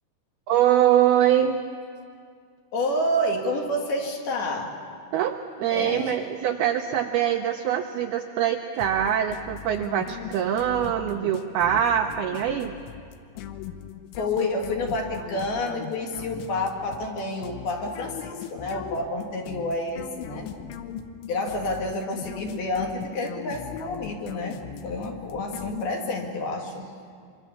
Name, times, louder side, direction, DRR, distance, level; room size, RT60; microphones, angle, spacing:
voice 1, 0.5-1.6 5.1-12.7, right 10 dB, 85° right, 5 dB, 2.2 m, -23 dB
voice 2, 2.7-4.7 5.7-6.2 14.2-20.5 21.3-26.9, left 1 dB, 60° left, 1 dB, 3.6 m, -29 dB
sound 1, 8.8-26.3, left 9 dB, 85° left, 3.4 m, -39 dB
24.5 x 24.5 x 7.2 m, 2.2 s
omnidirectional pair, 5.4 m